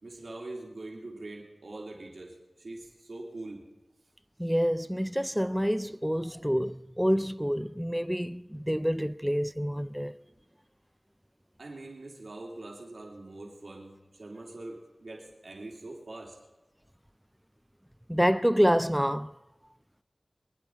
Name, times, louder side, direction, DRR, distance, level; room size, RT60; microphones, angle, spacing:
voice 1, 0.0-3.7 11.6-16.4, right 2 dB, 85° right, 3.0 m, -43 dB
voice 2, 4.4-10.1 18.1-19.3, equal, 5° right, 0.4 m, -27 dB
25.5 x 11.0 x 4.6 m
wide cardioid pair, 65°, 0 cm